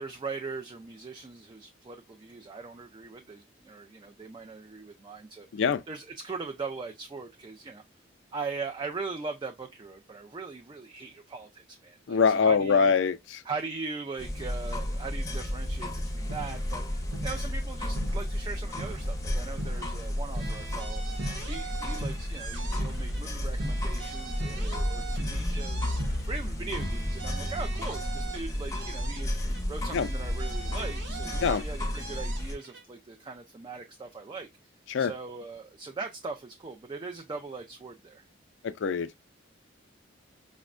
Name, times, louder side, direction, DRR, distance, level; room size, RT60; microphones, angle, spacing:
voice 1, 0.0-7.8 8.3-12.9 13.4-16.8 17.2-21.0 21.5-26.0 26.3-29.3 29.7-34.5 35.0-38.2, right 4 dB, 25° right, 0.4 m, -40 dB
voice 2, 12.1-13.4 29.9-30.1 31.4-31.6 34.9-35.1 38.6-39.1, left 6 dB, 70° left, 0.4 m, -24 dB
sound 1, 14.2-32.5, left 1 dB, 15° left, 0.6 m, -32 dB
sound 2, 16.0-27.5, equal, 90° right, 1.0 m, -41 dB
sound 3, 20.3-23.2 23.5-26.4 26.7-29.6 29.9-32.8, right 6 dB, 65° right, 0.8 m, -43 dB
5.0 x 2.1 x 2.4 m
head